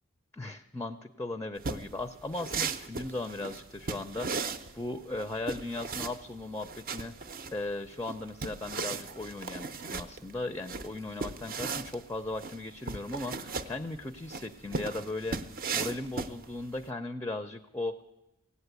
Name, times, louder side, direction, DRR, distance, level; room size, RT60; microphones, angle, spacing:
voice 1, 0.3-7.1 7.5-15.4 15.7-18.0, left 2 dB, 10° left, 9 dB, 0.4 m, -37 dB
sound 1, 1.6-16.8, right 4 dB, 40° right, 0.6 m, -37 dB
16.5 x 8.4 x 8.1 m, 0.97 s
head